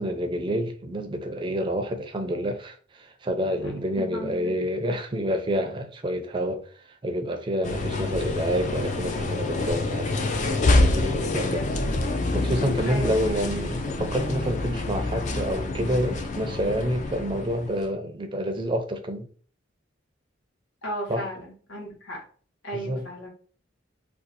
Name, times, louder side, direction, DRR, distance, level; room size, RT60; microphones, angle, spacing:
voice 1, 0.0-6.6 7.0-11.7 12.3-19.3 21.1-21.3 22.7-23.1, equal, 25° right, 0.4 m, -28 dB
voice 2, 4.0-4.6 12.8-13.1 20.8-22.2 22.6-23.3, right 1 dB, 80° left, 1.3 m, -35 dB
sound 1, 7.6-17.9, left 2 dB, 40° left, 0.4 m, -27 dB
2.6 x 2.3 x 4.0 m
head